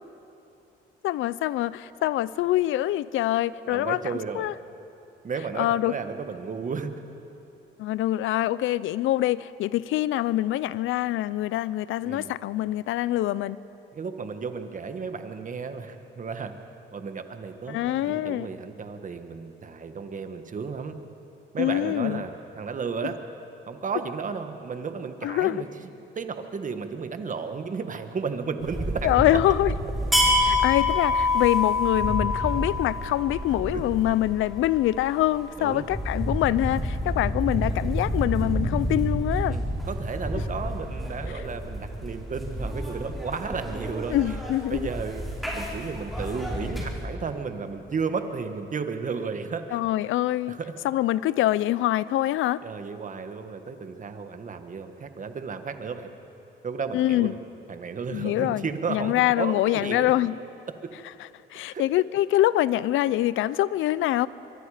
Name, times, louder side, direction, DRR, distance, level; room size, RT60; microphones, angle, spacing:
voice 1, 1.0-4.5 5.6-5.9 7.8-13.6 17.7-18.5 21.6-22.2 25.2-25.6 29.0-29.7 30.4-39.6 41.3-41.4 44.1-44.9 49.7-50.6 50.8-52.6 56.9-57.3 58.1-60.4 61.5-64.3, left 14 dB, 85° left, 18 dB, 0.6 m, -25 dB
voice 2, 3.7-4.5 5.2-6.9 12.0-12.3 13.9-16.5 16.9-21.0 21.5-23.2 23.7-25.7 26.1-29.5 33.7-33.8 35.6-35.8 39.5-44.2 44.7-45.2 45.5-49.8 50.5-50.8 52.6-56.1 56.6-57.4 57.7-60.1 61.7-61.8, right 5 dB, 40° right, 8 dB, 1.6 m, -33 dB
sound 1, 28.6-47.0, left 1 dB, ahead, 4.5 m, -28 dB
24.5 x 22.5 x 5.1 m, 2.9 s
cardioid pair, 90°, 20 cm